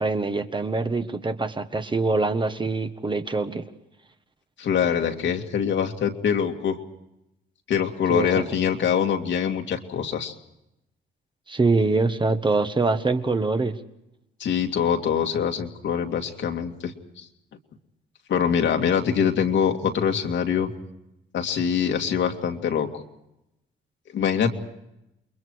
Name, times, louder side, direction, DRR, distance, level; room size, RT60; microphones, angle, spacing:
voice 1, 0.0-3.6 8.1-8.3 11.5-13.8, right 3 dB, 25° right, 8 dB, 1.5 m, -24 dB
voice 2, 4.6-6.8 7.7-10.3 14.4-17.3 18.3-20.7 21.3-23.0 24.1-24.5, left 7 dB, 70° left, 3 dB, 2.3 m, -24 dB
29.0 x 22.0 x 4.7 m, 0.88 s
cardioid pair, 90°, 20 cm